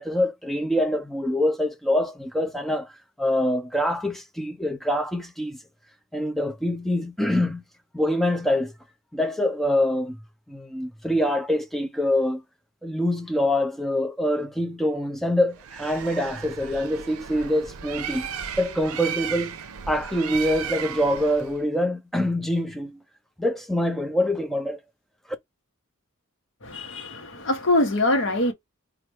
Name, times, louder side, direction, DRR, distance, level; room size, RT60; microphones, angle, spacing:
voice 1, 0.0-2.9 3.2-5.6 6.1-7.6 7.9-8.7 9.1-10.2 10.5-12.4 12.8-18.3 18.6-19.6 19.9-23.0 23.4-24.8, left 1 dB, ahead, 0.4 m, -25 dB
Bird, 15.6-21.6, right 7 dB, 80° right, 0.5 m, -35 dB
voice 2, 26.6-28.5, left 1 dB, 60° left, 1.0 m, -23 dB
3.1 x 2.4 x 4.3 m
head